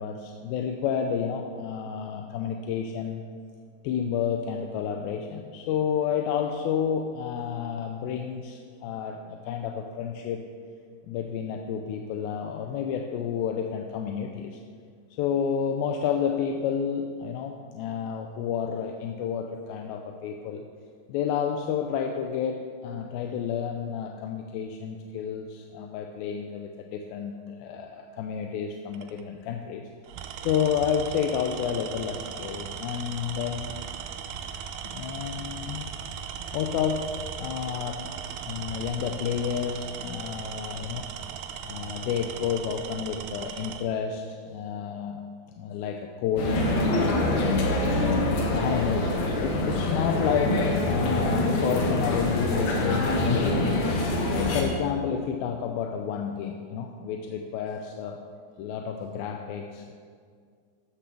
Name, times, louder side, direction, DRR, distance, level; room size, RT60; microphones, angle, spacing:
voice 1, 0.0-3.2 3.8-10.4 11.1-14.6 15.2-20.7 21.1-29.8 30.4-33.8 34.9-35.9 36.5-38.0 38.5-41.1 41.6-45.2 45.6-47.6 48.4-53.8 54.3-58.2 58.6-59.9, left 7 dB, 85° left, 3 dB, 2.4 m, -30 dB
Tools, 28.9-29.2 30.0-43.9, right 8 dB, 80° right, 1.8 m, -38 dB
sound 1, 46.4-54.6, left 2 dB, 60° left, 2.3 m, -25 dB
13.5 x 12.0 x 3.4 m, 2.1 s
omnidirectional pair, 4.2 m